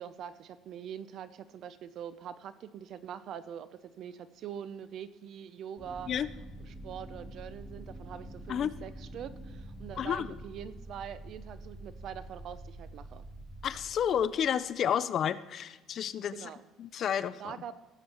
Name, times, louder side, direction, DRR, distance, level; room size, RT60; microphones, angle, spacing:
voice 1, 0.0-6.1 6.7-13.2 16.3-16.7 17.4-17.7, right 9 dB, 50° right, 14 dB, 0.7 m, -44 dB
sound 1, 5.8-14.5, right 1 dB, 25° left, 3.0 m, -46 dB
voice 2, 10.0-10.3 13.6-16.5 16.8-17.5, left 9 dB, 40° left, 15 dB, 0.5 m, -30 dB
17.5 x 7.1 x 4.4 m, 1.2 s
cardioid pair, 160°, 0 cm